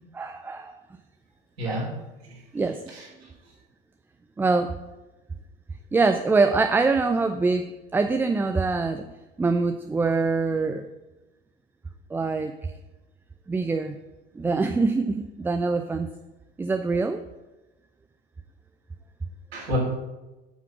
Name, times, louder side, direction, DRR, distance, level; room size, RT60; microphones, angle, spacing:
voice 1, 0.1-0.7 1.7-1.9 2.5-2.8 4.4-4.7 5.9-9.0 9.4-10.9 12.1-12.5 13.5-14.0 14.4-16.1 16.6-17.2, right 3 dB, 5° right, 7 dB, 0.3 m, -24 dB
voice 2, 2.9-3.5 19.5-19.8, left 1 dB, 75° right, -3 dB, 3.6 m, -31 dB
8.0 x 5.9 x 5.9 m, 1.1 s
figure-of-eight pair, 75°, 31 cm